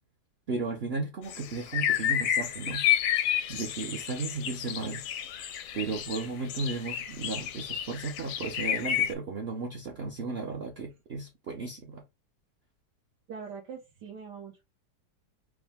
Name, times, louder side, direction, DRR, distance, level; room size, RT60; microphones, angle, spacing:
voice 1, 0.5-5.1 5.7-12.0, right 4 dB, 60° right, 0.6 m, -35 dB
sound 1, 1.3-9.1, left 10 dB, 70° left, 0.8 m, -30 dB
voice 2, 13.3-14.6, right 6 dB, 80° right, 1.6 m, -42 dB
4.8 x 2.1 x 3.4 m
omnidirectional pair, 1.8 m